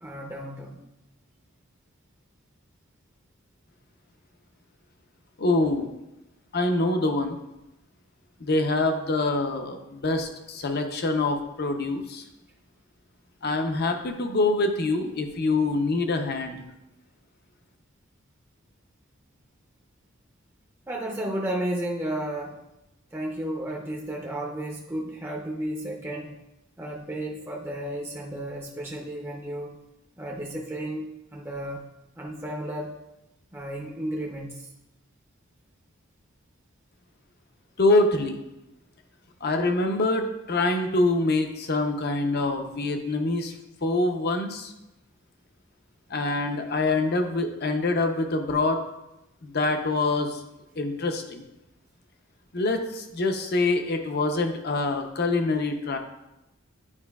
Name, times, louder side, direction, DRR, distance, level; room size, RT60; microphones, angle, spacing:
voice 1, 0.0-0.8 20.9-22.6 23.1-26.3 26.8-29.7 30.2-31.8 32.2-32.9 33.5-34.7, right 1 dB, 10° right, -2 dB, 0.6 m, -33 dB
voice 2, 5.4-5.9 6.5-7.4 8.4-12.2 13.4-16.6 37.8-38.4 39.4-43.6 43.8-44.7 46.1-48.8 49.4-50.4 50.8-51.4 52.5-56.0, left 2 dB, 50° left, 6 dB, 0.7 m, -25 dB
9.7 x 4.8 x 2.3 m, 0.92 s
head